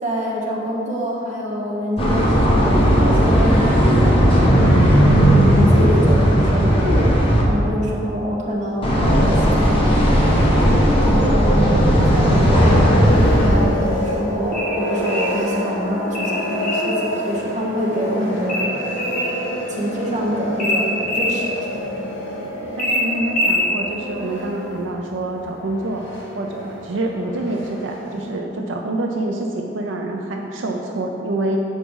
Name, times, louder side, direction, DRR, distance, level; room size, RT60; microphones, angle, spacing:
voice 1, 0.0-4.5 5.2-7.0 7.5-10.1 11.0-11.8 12.1-12.9 13.4-18.6 19.7-21.7, equal, 40° right, -3 dB, 1.4 m, -25 dB
sound 1, 2.0-7.4 8.8-13.5, equal, 30° left, 1.3 m, -15 dB
sound 2, 9.2-28.3, equal, 65° left, 1.8 m, -29 dB
sound 3, 14.5-15.4 16.1-16.9 18.5-19.4 20.6-21.3 22.8-23.7, left 1 dB, 50° left, 1.5 m, -23 dB
voice 2, 22.8-26.0 26.3-31.6, right 1 dB, 85° right, 1 dB, 0.5 m, -26 dB
7.3 x 4.8 x 5.4 m, 3.0 s
head